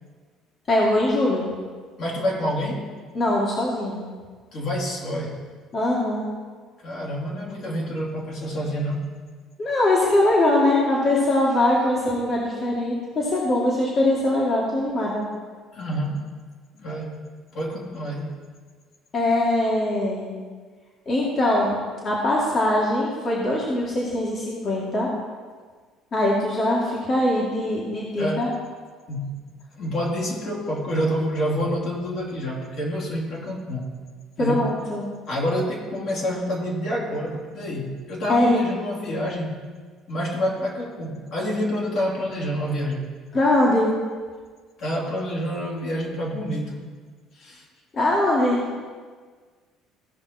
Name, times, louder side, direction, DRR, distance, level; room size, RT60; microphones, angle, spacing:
voice 1, 0.7-1.4 3.1-4.0 5.7-6.2 9.6-15.2 19.1-20.4 21.1-25.1 26.1-28.5 34.4-35.1 38.3-38.6 43.3-43.9 47.9-48.6, left 1 dB, 45° left, -4 dB, 2.3 m, -22 dB
voice 2, 2.0-2.9 4.5-5.5 6.8-9.1 15.7-16.3 16.7-17.2 17.5-18.4 28.2-28.5 29.1-29.4 29.8-33.9 34.4-34.7 35.3-39.6 40.1-43.1 44.8-46.8 47.3-47.6, equal, 60° left, -3 dB, 2.8 m, -28 dB
16.0 x 5.4 x 4.4 m, 1.5 s
supercardioid pair, 85°, 0 cm